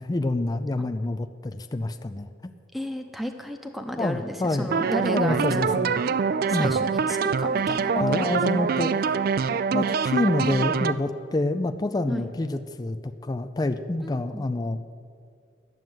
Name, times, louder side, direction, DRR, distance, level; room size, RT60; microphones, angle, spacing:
voice 1, 0.0-2.5 4.0-5.9 6.5-6.7 7.9-8.9 9.7-14.8, left 2 dB, 20° left, 8 dB, 0.4 m, -27 dB
voice 2, 2.7-6.0 6.5-8.7 12.1-12.3 14.0-14.5, equal, ahead, 5 dB, 0.8 m, -34 dB
sound 1, 4.7-10.9, right 6 dB, 50° right, 0.3 m, -24 dB
10.5 x 7.5 x 9.3 m, 2.3 s
head